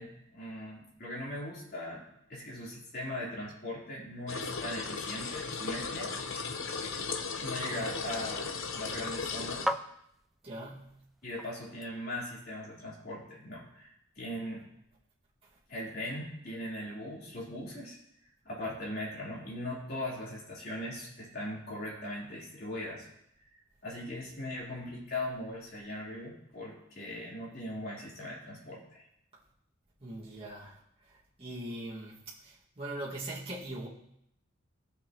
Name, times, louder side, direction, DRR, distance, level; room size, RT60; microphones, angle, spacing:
voice 1, 0.0-2.0 2.3-6.1 7.4-9.7 11.2-14.7 15.7-18.0 18.4-23.1 23.8-29.0, left 1 dB, 50° left, -5 dB, 3.9 m, -39 dB
sound 1, 4.3-9.7, left 5 dB, 70° left, 0.9 m, -36 dB
sound 2, 6.6-12.4, equal, ahead, 0.3 m, -42 dB
voice 2, 10.4-10.9 30.0-33.9, right 1 dB, 30° right, -7 dB, 2.2 m, -41 dB
18.5 x 6.9 x 3.1 m, 0.78 s
head